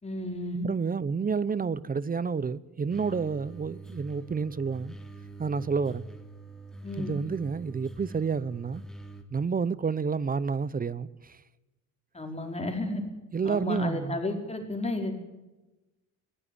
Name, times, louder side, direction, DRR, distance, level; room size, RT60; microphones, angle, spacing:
voice 1, 0.0-0.7 6.8-7.1 12.1-13.0 13.4-15.1, left 2 dB, 20° left, 4.9 m, -32 dB
voice 2, 0.6-5.0 5.4-6.0 7.0-8.8 9.3-11.4 13.3-14.2, right 5 dB, 30° right, 0.8 m, -29 dB
sound 1, 2.9-9.2, right 2 dB, ahead, 3.1 m, -45 dB
20.0 x 15.5 x 9.8 m
cardioid pair, 90°, 30 cm